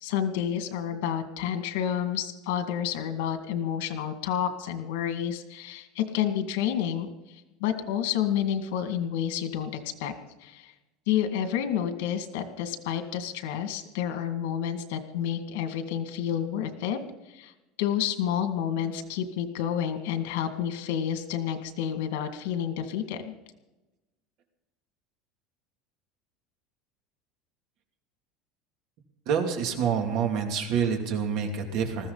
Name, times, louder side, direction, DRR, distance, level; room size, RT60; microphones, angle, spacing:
voice 1, 0.0-7.1 7.6-10.1 10.4-10.7 11.1-17.0 17.3-17.5 17.8-23.3, left 9 dB, 85° left, 7 dB, 2.0 m, -29 dB
voice 2, 29.3-32.1, right 7 dB, 50° right, 3 dB, 2.6 m, -27 dB
20.5 x 15.0 x 4.0 m, 1.0 s
cardioid pair, 170°, 0 cm